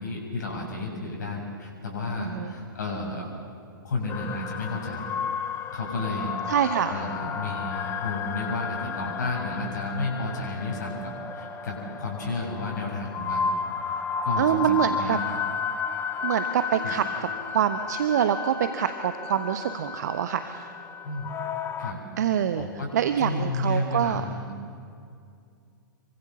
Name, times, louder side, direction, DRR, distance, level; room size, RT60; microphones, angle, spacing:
voice 1, 0.0-3.3 3.8-5.1 5.7-6.4 6.9-13.5 13.8-15.4 16.7-17.0 21.0-21.3 21.8-24.5, left 2 dB, 55° left, -1 dB, 7.2 m, -32 dB
sound 1, 4.1-21.9, left 6 dB, 20° left, 1.3 m, -33 dB
voice 2, 6.5-6.9 14.4-15.2 16.2-17.0 17.5-20.7 22.2-22.7 22.9-24.2, right 9 dB, 50° right, 9 dB, 1.1 m, -25 dB
27.5 x 24.0 x 7.0 m, 2.3 s
figure-of-eight pair, 115°, 11 cm